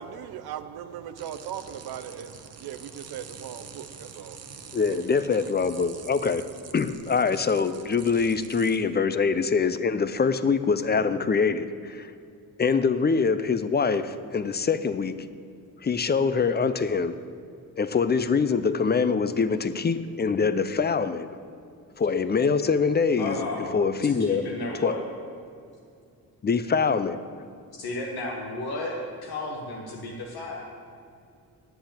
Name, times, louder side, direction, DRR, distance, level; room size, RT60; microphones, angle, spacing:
voice 1, 0.0-5.9, right 9 dB, 90° right, 11 dB, 0.7 m, -40 dB
sound 1, 1.2-8.8, right 6 dB, 45° right, 0.9 m, -46 dB
voice 2, 4.7-6.4 6.7-12.1 12.6-15.2 15.8-17.2 17.8-21.3 22.0-24.5 24.8-24.9 26.4-27.2, left 5 dB, 30° left, 13 dB, 0.5 m, -24 dB
voice 3, 23.2-25.0 27.8-28.9 29.2-30.9, left 2 dB, 85° left, -1 dB, 1.4 m, -33 dB
7.9 x 7.9 x 8.7 m, 2.4 s
cardioid pair, 95°, 36 cm